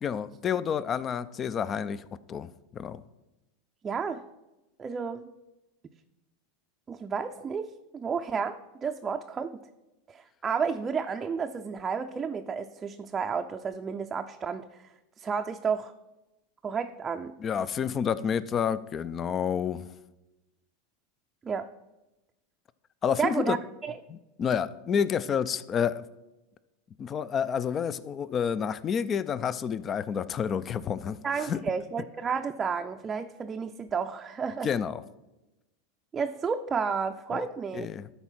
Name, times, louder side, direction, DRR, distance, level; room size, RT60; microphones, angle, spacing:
voice 1, 0.0-3.0 17.4-19.9 23.0-23.6 24.1-26.0 27.0-31.6 34.6-35.0 37.3-37.5 37.7-38.1, left 7 dB, 30° left, 0.5 m, -29 dB
voice 2, 3.8-4.2 4.8-5.3 6.9-9.5 10.1-14.8 15.2-15.9 16.6-17.3 21.4-21.7 23.2-23.6 23.8-24.0 31.2-34.7 36.1-37.9, right 6 dB, 25° right, 0.5 m, -31 dB
12.5 x 4.3 x 5.8 m
hypercardioid pair, 95°, 0 cm